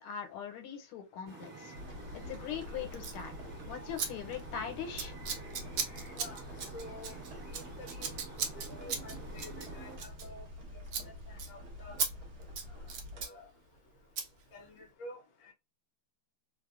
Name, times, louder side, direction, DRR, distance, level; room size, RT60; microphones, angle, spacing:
voice 1, 0.0-1.7 2.1-3.3 3.7-5.1, left 8 dB, 80° left, 1.6 m, -41 dB
sound 1, 1.3-10.0, right 3 dB, 40° right, 1.2 m, -49 dB
sound 2, 1.7-13.3, left 1 dB, 60° right, 1.3 m, -47 dB
Scissors, 2.9-3.2 4.0-4.1 4.3-4.6 5.0-10.6 10.9-11.1 11.4-11.5 12.0-12.1 12.4-13.3 14.2-14.3, right 6 dB, 85° right, 0.8 m, -37 dB
voice 2, 6.7-7.1 7.5-8.2 8.6-10.4 11.0-12.0 13.2-13.5 14.5-15.2 15.5-15.6, left 1 dB, 60° left, 0.8 m, -49 dB
3.5 x 2.0 x 2.3 m
omnidirectional pair, 2.4 m